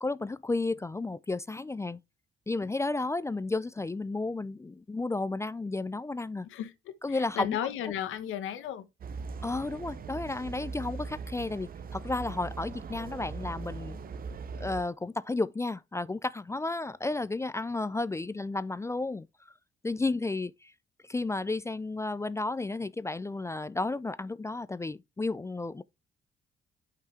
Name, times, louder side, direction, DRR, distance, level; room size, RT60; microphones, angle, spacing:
voice 1, 0.0-2.0 2.5-6.5 7.0-7.6 9.4-14.0 14.6-19.3 19.8-20.7 21.0-25.8, left 3 dB, 15° left, 0.3 m, -32 dB
voice 2, 6.5-8.8, left 10 dB, 85° left, 1.3 m, -35 dB
sound 1, 9.0-14.8, right 4 dB, 45° right, 0.7 m, -40 dB
8.1 x 5.8 x 3.4 m
cardioid pair, 90°, 20 cm